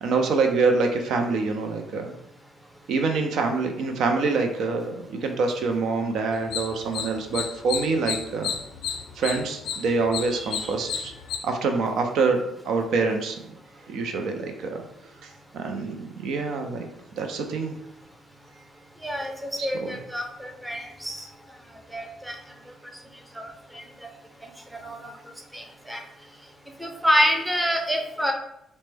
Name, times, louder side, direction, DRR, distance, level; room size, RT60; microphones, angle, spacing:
voice 1, 0.0-2.1 2.9-8.5 9.2-11.1 11.4-13.4 13.9-14.8 15.2-16.9 17.2-17.8 19.6-20.0, right 4 dB, 75° right, 4 dB, 0.5 m, -26 dB
sound 1, 6.3-11.4, left 8 dB, 80° left, 0.3 m, -32 dB
voice 2, 10.3-10.7 19.0-21.2 21.9-22.3 23.4-23.8 24.8-25.1 25.5-26.0 26.8-28.3, equal, 5° right, 2 dB, 0.6 m, -27 dB
4.2 x 2.1 x 3.3 m, 0.80 s
cardioid pair, 90°, 0 cm